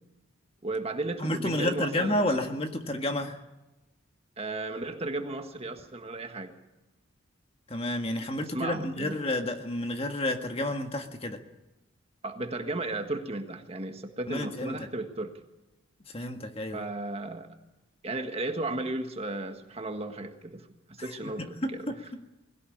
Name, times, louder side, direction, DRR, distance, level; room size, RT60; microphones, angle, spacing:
voice 1, 0.6-2.4 4.4-6.5 8.5-9.2 12.2-15.3 16.7-17.5 18.0-20.7 21.0-21.9, right 2 dB, 30° right, 6 dB, 1.6 m, -34 dB
voice 2, 1.2-3.4 7.7-11.4 14.3-14.8 16.1-16.9 21.2-21.9, left 1 dB, 30° left, 5 dB, 1.7 m, -30 dB
21.0 x 17.0 x 8.7 m, 1.0 s
head